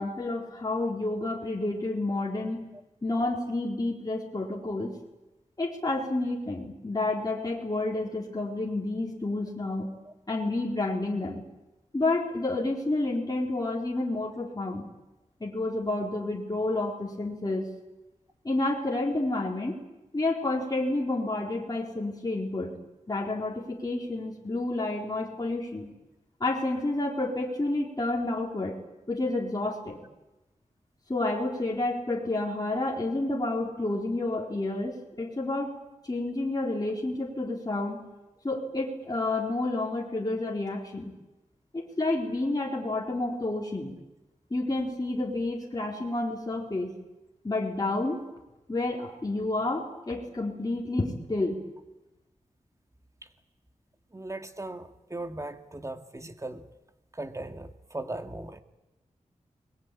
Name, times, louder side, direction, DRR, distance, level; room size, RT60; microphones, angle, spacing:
voice 1, 0.0-2.7 3.0-5.0 5.6-9.9 10.3-11.4 11.9-14.9 15.4-17.7 18.4-19.8 20.1-22.8 23.1-25.9 26.4-28.7 29.1-30.0 31.1-35.7 36.0-38.0 38.4-41.1 41.7-43.9 44.5-46.9 47.4-48.2 48.7-51.6, left 2 dB, 30° left, -2 dB, 4.3 m, -30 dB
voice 2, 54.1-56.7 57.1-58.6, right 2 dB, 25° right, 7 dB, 2.4 m, -38 dB
28.5 x 21.5 x 8.6 m, 1.0 s
wide cardioid pair, 65°, 13 cm